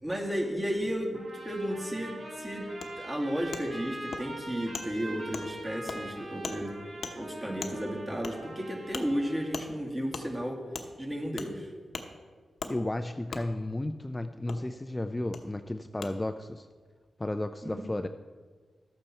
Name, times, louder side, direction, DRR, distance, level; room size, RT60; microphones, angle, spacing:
voice 1, 0.0-2.7 3.0-6.8 7.1-10.6 11.0-11.7 17.6-17.8, equal, 20° right, 0 dB, 2.2 m, -33 dB
sound 1, 1.1-9.5, right 1 dB, 75° right, 3.8 m, -43 dB
Wood, 2.8-2.9 3.5-3.6 4.1-4.2 4.7-4.9 5.3-5.5 5.9-6.0 6.4-6.6 7.0-7.1 7.6-7.7 8.2-8.3 8.9-9.0 9.5-9.7 10.1-10.3 10.7-10.9 11.4-11.5 11.9-12.1 12.6-12.7 13.3-13.4 14.5-14.6 15.3-15.4 16.0-16.1, left 4 dB, 75° left, 1.0 m, -37 dB
voice 2, 12.7-16.7 17.2-18.1, left 1 dB, 20° left, 8 dB, 0.4 m, -33 dB
12.5 x 8.6 x 4.3 m, 1.5 s
cardioid pair, 60°, 0 cm